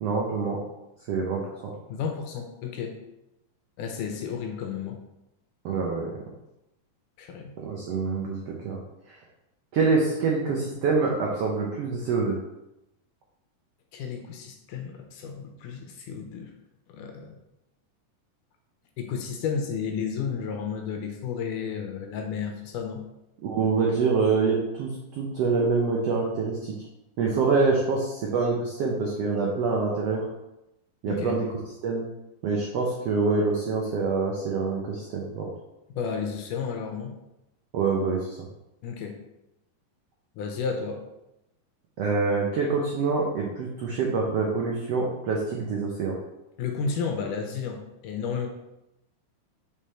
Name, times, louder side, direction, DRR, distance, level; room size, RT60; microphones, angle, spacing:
voice 1, 0.0-0.6 1.1-1.7 5.6-6.1 7.6-8.8 9.1-9.2 9.7-12.4 23.4-26.8 27.2-30.2 31.0-31.5 31.8-32.0 32.4-35.5 37.7-38.4 42.0-46.2, right 4 dB, 80° right, -2 dB, 1.4 m, -26 dB
voice 2, 1.9-3.0 3.8-5.0 7.2-7.5 13.9-16.5 16.9-17.4 19.0-23.0 31.1-31.4 35.9-37.2 38.8-39.2 40.4-41.0 46.6-48.5, left 6 dB, 75° left, 3 dB, 2.1 m, -32 dB
5.2 x 5.0 x 4.3 m, 0.90 s
omnidirectional pair, 4.0 m